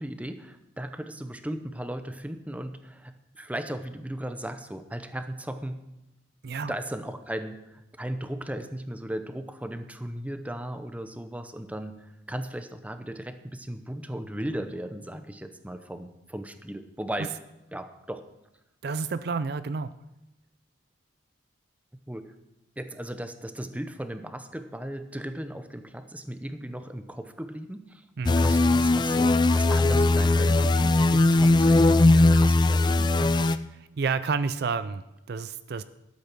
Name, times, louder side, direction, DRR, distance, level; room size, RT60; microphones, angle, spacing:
voice 1, 0.0-5.9 6.6-17.4 17.7-18.3 22.1-22.3 22.8-28.1 28.3-33.5, right 1 dB, 5° right, 9 dB, 0.7 m, -37 dB
voice 2, 18.8-19.9 28.2-28.4 34.0-35.8, right 5 dB, 55° right, 14 dB, 0.4 m, -30 dB
sound 1, 28.3-33.6, left 2 dB, 25° left, 0.4 m, -20 dB
12.5 x 8.5 x 6.0 m, 0.93 s
head